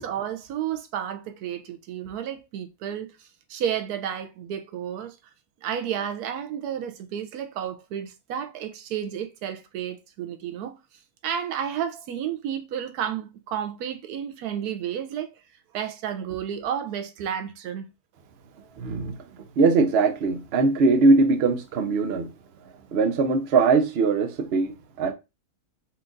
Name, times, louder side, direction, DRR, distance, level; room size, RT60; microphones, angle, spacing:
voice 1, 0.0-3.1 3.5-5.2 5.6-10.7 11.2-15.3 15.7-17.9, right 9 dB, 90° right, 1.1 m, -31 dB
voice 2, 18.8-22.3 22.9-25.1, right 3 dB, 55° right, 0.8 m, -21 dB
4.3 x 2.4 x 3.8 m
omnidirectional pair, 1.6 m